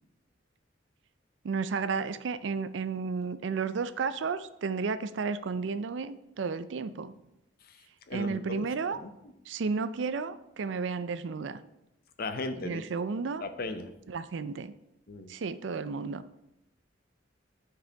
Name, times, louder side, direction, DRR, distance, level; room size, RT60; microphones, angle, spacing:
voice 1, 1.4-7.2 8.1-9.0 9.5-11.6 12.6-13.4 14.1-14.8 15.3-16.2, right 5 dB, 70° right, 13 dB, 0.4 m, -32 dB
voice 2, 7.6-9.1 12.2-12.8 13.4-13.9 15.1-15.3, left 2 dB, 55° left, 9 dB, 0.7 m, -37 dB
11.5 x 4.8 x 3.4 m, 0.87 s
head